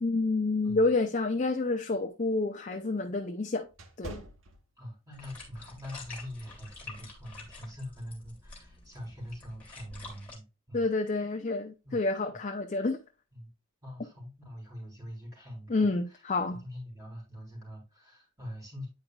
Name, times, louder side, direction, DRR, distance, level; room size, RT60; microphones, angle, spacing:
voice 1, 0.0-3.7 4.0-4.2 10.7-13.0 15.7-16.6, left 3 dB, 35° left, 0.5 m, -29 dB
sound 1, 1.5-5.2 5.7-5.9 6.5-6.8, right 2 dB, 75° right, 1.0 m, -48 dB
voice 2, 4.8-10.9 11.8-12.0 13.3-13.5 13.8-15.9 16.6-18.9, equal, 15° right, 3.6 m, -43 dB
sound 2, 5.1-10.3, left 3 dB, 10° left, 2.3 m, -48 dB
9.4 x 4.9 x 2.3 m
head